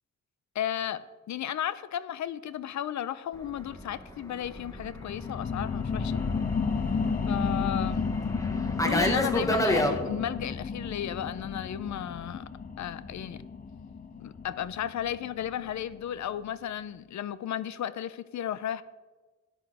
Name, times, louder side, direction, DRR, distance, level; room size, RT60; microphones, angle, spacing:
voice 1, 0.5-6.2 7.3-8.1 8.8-12.5 12.8-13.4 14.2-18.8, left 10 dB, 70° left, 16 dB, 0.6 m, -34 dB
Fixed-wing aircraft airplane, 3.5-10.0, equal, 10° left, 1.2 m, -31 dB
sound 1, 4.8-16.0 16.4-16.5, left 5 dB, 30° left, 0.6 m, -32 dB
12.5 x 10.0 x 4.9 m, 1.3 s
cardioid pair, 120°, 30 cm